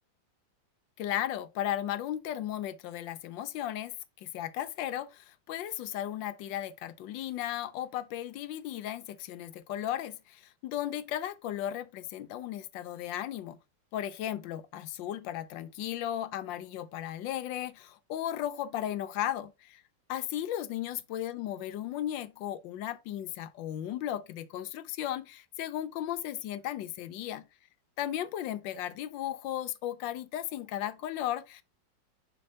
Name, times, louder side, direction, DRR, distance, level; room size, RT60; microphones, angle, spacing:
voice 1, 1.0-13.6 13.9-19.8 20.1-27.5 28.0-31.6, left 11 dB, 80° left, 1.3 m, -35 dB
6.4 x 5.5 x 2.7 m
omnidirectional pair, 2.0 m